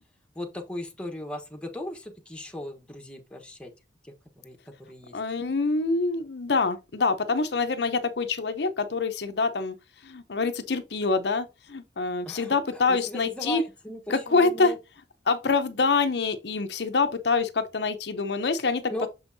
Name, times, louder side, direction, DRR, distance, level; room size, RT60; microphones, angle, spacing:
voice 1, 0.3-3.7 4.0-4.1 4.4-4.6 4.9-5.2 12.2-14.8 18.9-19.1, left 1 dB, 5° left, 1.2 m, -37 dB
voice 2, 5.1-9.8 10.0-13.6 14.1-14.7 15.3-18.9, left 4 dB, 65° left, 0.7 m, -25 dB
7.0 x 5.3 x 2.7 m
head